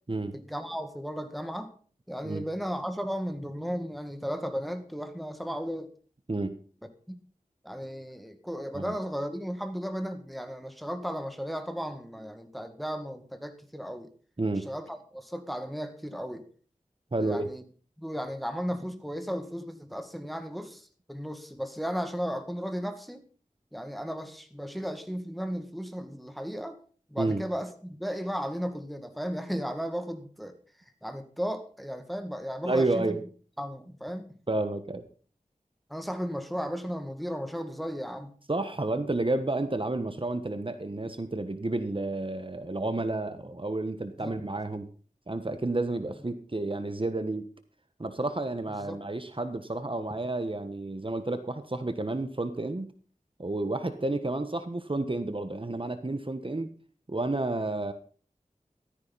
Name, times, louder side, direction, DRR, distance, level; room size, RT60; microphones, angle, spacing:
voice 1, 0.3-1.7 2.1-5.9 7.1-7.2 7.6-14.1 14.5-16.5 17.2-17.6 18.0-23.2 23.7-26.8 27.1-30.6 31.0-33.2 33.6-34.3 35.9-38.3 44.2-44.3 48.8-49.0, equal, ahead, 2.0 m, -35 dB
voice 2, 17.1-17.5 27.2-27.4 32.6-33.2 34.5-35.0 38.5-44.9 45.3-47.4 48.0-52.9 53.4-56.7 57.1-57.9, right 2 dB, 40° right, 1.3 m, -30 dB
15.0 x 13.5 x 4.1 m
wide cardioid pair, 55°, 13 cm